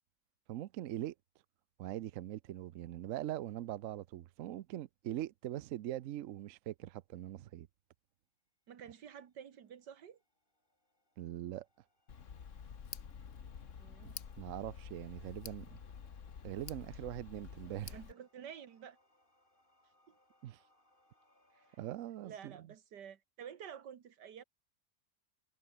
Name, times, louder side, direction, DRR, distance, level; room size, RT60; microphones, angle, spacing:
voice 1, 0.5-1.1 1.8-7.7 11.2-11.7 14.0-15.8 16.4-18.0 20.4-20.6 21.8-22.7, right 13 dB, 65° right, 0.9 m, -42 dB
sound 1, 8.7-21.9, left 1 dB, 30° left, 6.4 m, -75 dB
voice 2, 8.7-10.2 13.8-14.2 17.9-19.0 20.1-20.2 21.5-21.8 22.2-24.4, right 8 dB, 90° right, 2.0 m, -51 dB
Tick, 12.1-18.1, left 7 dB, 50° left, 1.6 m, -49 dB
omnidirectional pair, 1.8 m